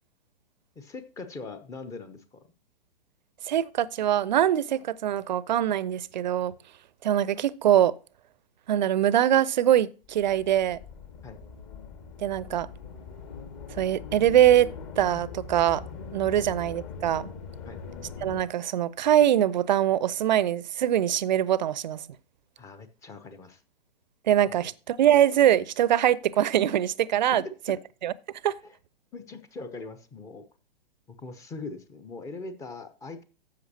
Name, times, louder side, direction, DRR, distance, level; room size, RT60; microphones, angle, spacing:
voice 1, 0.8-2.4 11.2-11.4 16.4-16.5 17.7-17.8 22.6-23.6 27.3-27.5 28.6-28.7 29.1-30.4 31.1-33.2, left 3 dB, 10° left, 0.7 m, -41 dB
voice 2, 3.5-6.5 7.0-7.9 8.7-10.8 12.2-12.7 13.8-15.8 16.1-17.3 18.2-22.0 24.3-27.4 27.7-27.8 28.0-28.1 28.4-28.6, right 11 dB, 50° right, 0.6 m, -23 dB
sound 1, 10.0-18.4, left 5 dB, 35° left, 1.8 m, -41 dB
12.5 x 7.8 x 2.8 m
figure-of-eight pair, 115°, 30 cm